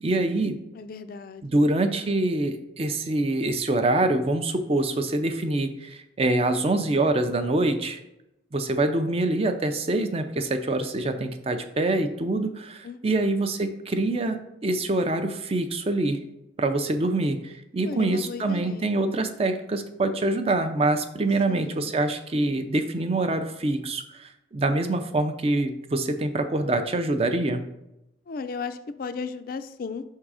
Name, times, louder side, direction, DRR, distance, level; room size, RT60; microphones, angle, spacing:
voice 1, 0.0-0.6 1.4-8.0 8.5-16.2 16.6-27.7, right 2 dB, 30° right, 8 dB, 0.4 m, -25 dB
voice 2, 0.7-1.7 12.8-13.3 17.9-19.0 21.5-21.9 28.3-30.0, left 5 dB, 50° left, 11 dB, 0.3 m, -36 dB
5.4 x 3.7 x 4.8 m, 0.88 s
head